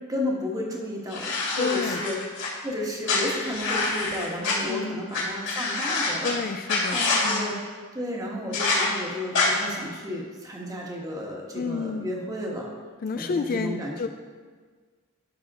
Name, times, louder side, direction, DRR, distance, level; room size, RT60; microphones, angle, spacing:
voice 1, 0.1-2.2 2.6-6.4 6.9-7.6 7.9-12.7 13.1-14.1, left 1 dB, 15° right, -1 dB, 1.4 m, -33 dB
sound 1, 1.1-2.5 3.0-4.5 5.1-5.2 5.4-6.3 6.7-7.4 8.5-8.8 9.3-9.5, left 3 dB, 60° left, 2.7 m, -26 dB
voice 2, 1.6-2.0 4.7-5.1 6.2-7.6 11.5-12.1 13.0-14.1, left 4 dB, 45° left, 7 dB, 0.4 m, -30 dB
12.0 x 6.0 x 3.6 m, 1.5 s
head